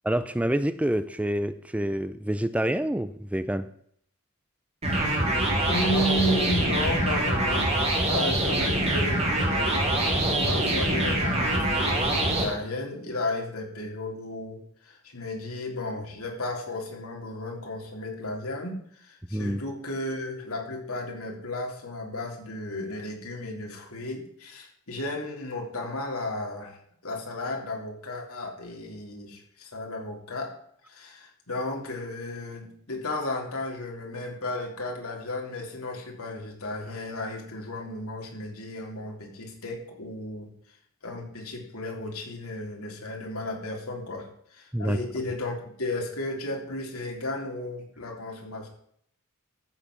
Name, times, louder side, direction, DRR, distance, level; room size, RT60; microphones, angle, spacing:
voice 1, 0.0-3.7 19.3-19.6 44.7-45.0, right 1 dB, 5° right, 13 dB, 0.4 m, -27 dB
sound 1, 4.8-12.4, right 1 dB, 30° right, 3.6 m, -24 dB
voice 2, 5.0-5.3 5.6-7.7 8.1-10.2 10.4-30.5 30.9-40.5 41.0-48.7, left 1 dB, 75° left, 1 dB, 3.4 m, -34 dB
13.5 x 7.4 x 6.2 m, 0.66 s
head